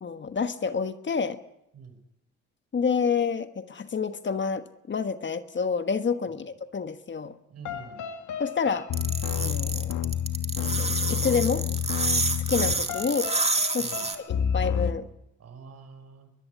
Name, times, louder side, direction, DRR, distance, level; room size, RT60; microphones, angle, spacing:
voice 1, 0.0-1.4 2.7-7.4 8.4-8.9 9.4-9.9 10.6-11.7 12.5-13.3 13.7-15.1, left 5 dB, 40° left, 10 dB, 1.4 m, -28 dB
voice 2, 7.5-8.1 13.8-14.1 15.4-16.3, right 5 dB, 55° right, 8 dB, 6.0 m, -46 dB
sound 1, 7.7-14.9, left 9 dB, 75° left, 2.0 m, -30 dB
sound 2, 8.9-14.2, right 3 dB, 20° right, 2.5 m, -28 dB
22.5 x 21.5 x 8.3 m, 0.83 s
cardioid pair, 90°, 30 cm